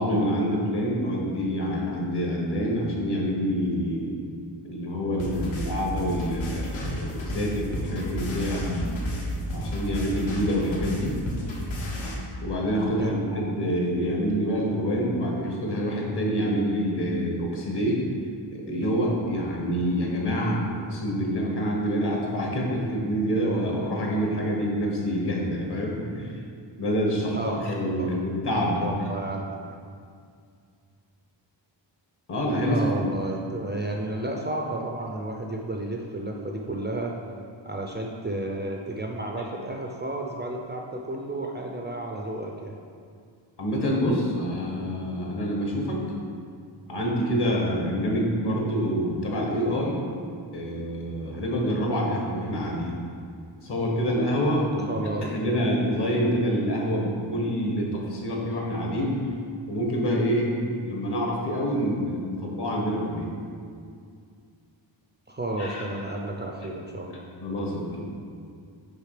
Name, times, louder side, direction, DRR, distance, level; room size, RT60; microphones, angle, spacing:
voice 1, 0.0-4.2 4.6-8.9 9.5-11.2 12.4-18.0 18.5-20.6 20.9-26.4 26.8-28.8 32.3-33.1 43.6-46.0 46.9-50.0 50.5-52.9 53.6-59.2 59.7-63.3 65.6-65.8 67.4-68.0, equal, 60° left, -2 dB, 1.5 m, -26 dB
sound 1, 5.2-12.1, equal, 75° left, 1.5 m, -32 dB
voice 2, 28.8-29.6 32.6-37.2 37.7-42.8 54.8-55.7 65.3-67.2, right 1 dB, 25° right, 0 dB, 0.4 m, -32 dB
6.6 x 5.1 x 4.9 m, 2.3 s
wide cardioid pair, 160°, 47 cm